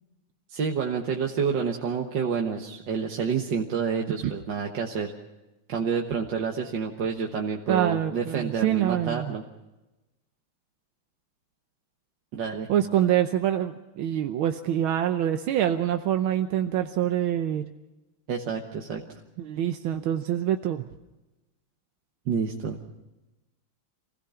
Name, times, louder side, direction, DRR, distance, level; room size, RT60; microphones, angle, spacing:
voice 1, 0.5-5.1 5.7-9.4 12.3-12.7 18.3-19.0 22.3-22.8, right 6 dB, 65° right, 1 dB, 2.0 m, -28 dB
voice 2, 7.7-9.3 12.7-17.6 19.4-20.9, right 11 dB, 80° right, 7 dB, 1.7 m, -25 dB
27.0 x 17.0 x 5.7 m, 1.0 s
omnidirectional pair, 2.2 m